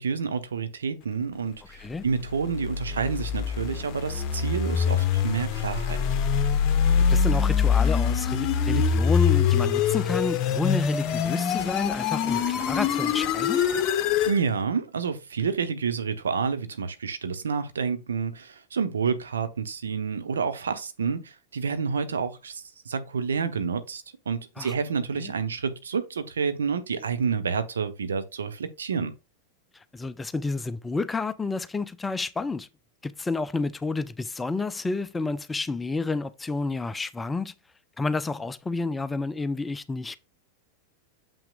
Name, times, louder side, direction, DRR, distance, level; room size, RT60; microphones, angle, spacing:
voice 1, 0.0-6.0 14.3-29.1, right 5 dB, 70° right, 0.9 m, -29 dB
voice 2, 1.7-2.0 7.1-13.6 24.6-24.7 25.2-25.3 29.9-32.7 33.0-37.5 38.0-40.2, left 3 dB, 10° left, 0.5 m, -30 dB
sound 1, 2.2-14.4, left 7 dB, 35° left, 0.9 m, -24 dB
7.1 x 5.8 x 2.4 m
figure-of-eight pair, 90°, 0 cm